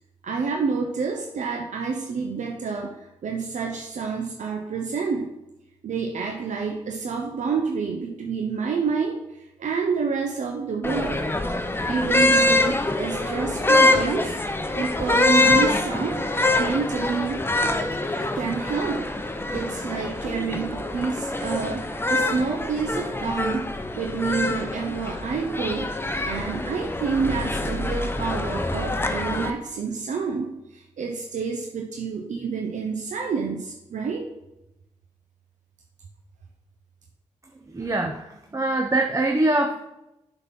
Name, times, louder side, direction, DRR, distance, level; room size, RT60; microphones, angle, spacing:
voice 1, 0.2-5.3 5.8-11.2 11.9-14.4 14.7-16.2 16.6-17.4 18.1-23.7 24.0-25.9 26.2-34.3, right 5 dB, 75° right, 2 dB, 0.8 m, -28 dB
sound 1, 10.8-29.5, left 2 dB, 20° left, 0.8 m, -25 dB
voice 2, 37.7-39.9, right 2 dB, 25° right, 3 dB, 0.8 m, -24 dB
6.8 x 4.1 x 6.0 m, 0.89 s
cardioid pair, 50°, 13 cm